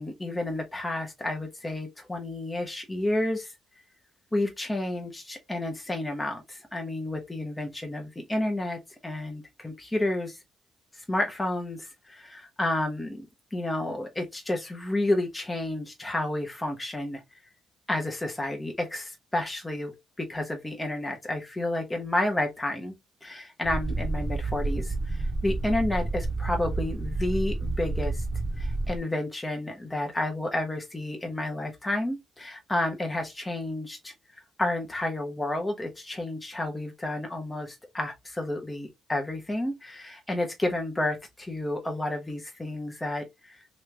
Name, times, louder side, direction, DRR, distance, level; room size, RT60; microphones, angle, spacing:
voice 1, 0.0-3.5 4.3-10.4 10.9-13.3 13.5-17.4 17.9-22.9 23.2-28.2 28.6-43.7, left 1 dB, 15° left, 0.9 m, -31 dB
sound 1, 23.6-29.0, right 2 dB, 20° right, 1.1 m, -30 dB
3.1 x 2.8 x 3.4 m
cardioid pair, 90°, 0 cm